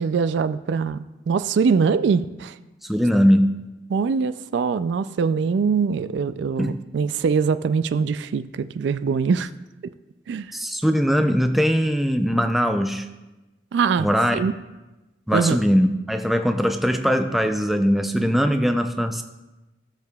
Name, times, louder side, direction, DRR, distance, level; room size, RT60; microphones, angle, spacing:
voice 1, 0.0-2.6 3.9-9.5 9.8-9.9 10.3-10.5 13.7-14.5 15.3-15.6, right 5 dB, 70° right, 13 dB, 0.3 m, -23 dB
voice 2, 2.8-3.6 6.6-6.8 10.5-13.1 14.0-14.4 15.3-19.2, equal, ahead, 6 dB, 0.4 m, -21 dB
16.5 x 6.7 x 2.3 m, 1.1 s
head